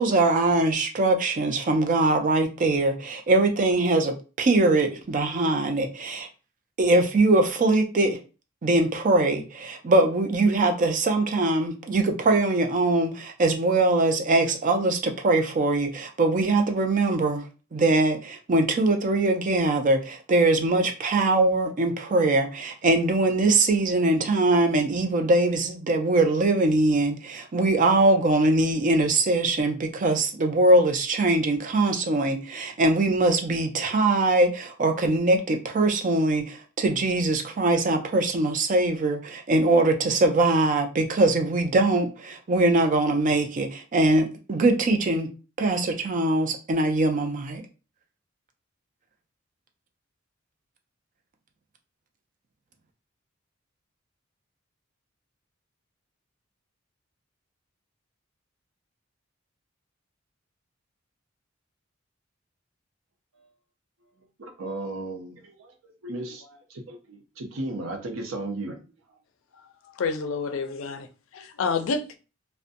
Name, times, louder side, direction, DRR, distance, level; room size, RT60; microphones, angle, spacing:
voice 1, 0.0-6.3 6.8-8.2 8.6-17.5 17.7-45.3 45.6-47.6, right 2 dB, 40° right, 0.5 m, -22 dB
voice 2, 64.4-68.8, right 2 dB, 80° right, 0.6 m, -35 dB
voice 3, 70.0-71.1 71.3-72.2, left 4 dB, 85° left, 0.4 m, -28 dB
2.6 x 2.1 x 2.5 m
head